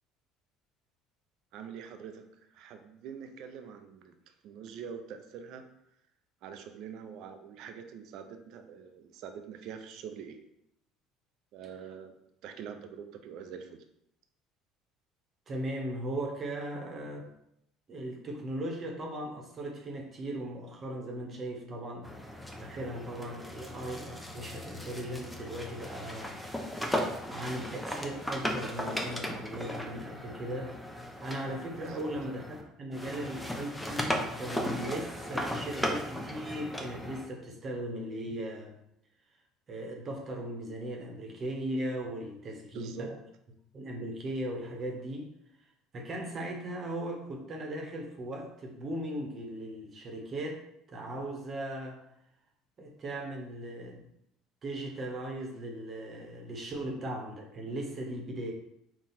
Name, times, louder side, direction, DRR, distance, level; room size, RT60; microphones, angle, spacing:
voice 1, 1.5-2.3 2.5-4.2 4.4-5.6 6.4-10.4 11.5-12.2 12.4-13.8 31.9-32.1 42.7-43.1, right 7 dB, 65° right, 7 dB, 0.5 m, -44 dB
voice 2, 15.5-17.3 17.9-22.1 22.6-26.4 27.3-38.7 39.7-43.1 43.7-45.3 45.9-52.0 52.8-54.0 54.6-58.5, right 1 dB, 40° right, 1 dB, 1.0 m, -38 dB
sound 1, 22.0-32.6 32.9-37.3, equal, 5° left, 0.7 m, -37 dB
4.0 x 2.3 x 4.1 m, 0.77 s
hypercardioid pair, 65°, 0 cm